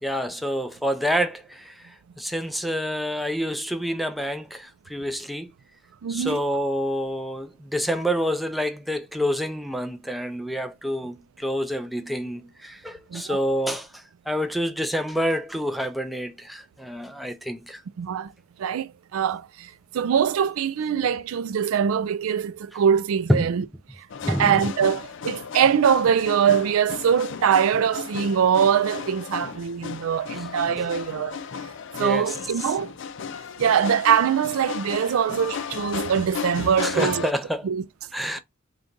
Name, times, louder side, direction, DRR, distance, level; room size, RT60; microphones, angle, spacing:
voice 1, 0.0-1.8 2.2-5.5 6.1-17.8 23.3-23.5 24.2-24.7 30.8-30.9 32.0-32.4 36.8-37.7 38.1-38.4, equal, ahead, 0.4 m, -27 dB
voice 2, 6.0-6.4 13.1-13.4 18.0-18.3 18.6-23.6 24.0-31.4 32.0-32.9 33.6-37.3 37.6-37.8, right 8 dB, 85° right, 0.4 m, -23 dB
sound 1, 24.1-37.3, left 6 dB, 60° left, 0.4 m, -35 dB
3.8 x 2.3 x 3.8 m
head